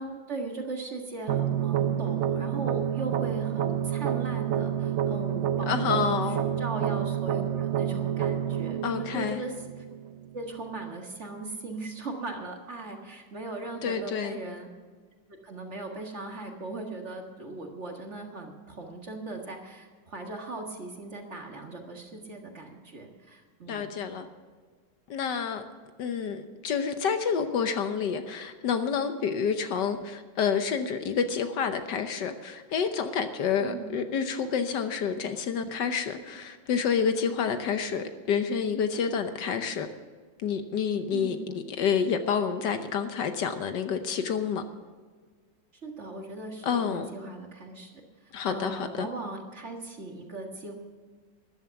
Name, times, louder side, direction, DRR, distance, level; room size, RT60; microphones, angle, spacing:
voice 1, 0.0-9.9 10.3-14.7 15.3-24.0 33.6-34.0 41.1-41.5 45.8-50.7, right 3 dB, 40° right, 2 dB, 1.9 m, -39 dB
sound 1, 1.3-10.3, right 10 dB, 85° right, 0.6 m, -29 dB
voice 2, 5.7-6.4 8.8-9.4 13.8-14.4 23.7-24.3 25.1-25.6 26.0-39.9 40.4-44.6 46.6-47.1 48.3-49.1, left 6 dB, 70° left, 8 dB, 1.5 m, -29 dB
13.5 x 11.0 x 5.8 m, 1.5 s
omnidirectional pair, 2.0 m